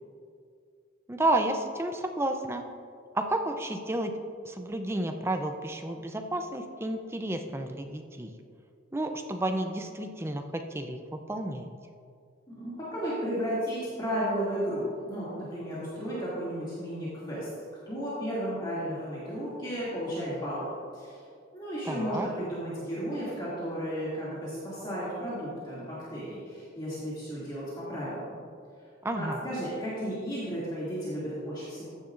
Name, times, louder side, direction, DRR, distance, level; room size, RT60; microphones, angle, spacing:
voice 1, 1.1-2.6 3.1-4.1 4.4-8.3 8.9-11.7 21.8-22.3 29.0-29.4, right 1 dB, 10° right, 5 dB, 0.5 m, -31 dB
voice 2, 12.5-17.5 17.9-20.7 20.9-21.2 21.5-28.4 29.2-31.9, equal, 20° left, -10 dB, 2.3 m, -34 dB
14.5 x 10.0 x 2.5 m, 2.3 s
head